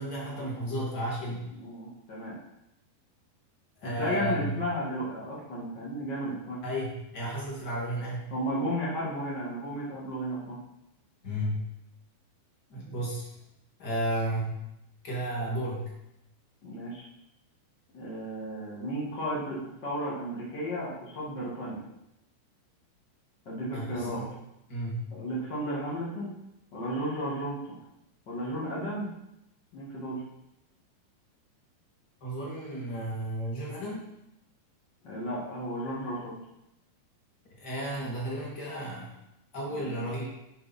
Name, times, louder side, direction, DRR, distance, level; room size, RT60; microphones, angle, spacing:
voice 1, 0.0-1.5 3.8-4.6 6.6-8.2 11.2-11.6 12.7-13.3 13.8-14.6 15.0-15.9 23.7-24.3 24.7-25.1 32.2-34.0 37.6-39.1 39.5-40.2, right 1 dB, 40° left, -5 dB, 1.5 m, -33 dB
voice 2, 1.6-2.4 3.8-6.6 8.3-10.6 16.6-17.0 17.9-21.8 23.4-24.2 25.1-26.3 26.7-27.7 28.3-29.1 29.7-30.2 35.0-36.4 39.7-40.1, equal, 75° left, -7 dB, 1.0 m, -34 dB
10.0 x 5.3 x 4.2 m, 0.86 s
omnidirectional pair, 5.2 m